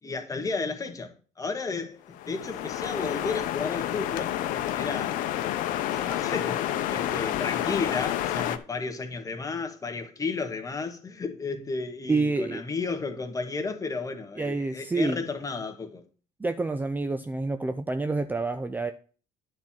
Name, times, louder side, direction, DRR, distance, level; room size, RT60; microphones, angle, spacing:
voice 1, 0.0-2.0 2.3-5.2 5.9-16.0, left 4 dB, 25° left, 1.6 m, -33 dB
sound 1, 2.1-8.6, left 12 dB, 70° left, 0.8 m, -29 dB
voice 2, 12.1-12.6 14.4-15.2 16.4-18.9, right 3 dB, 10° right, 0.5 m, -28 dB
9.4 x 4.5 x 7.3 m
supercardioid pair, 100°, 14 cm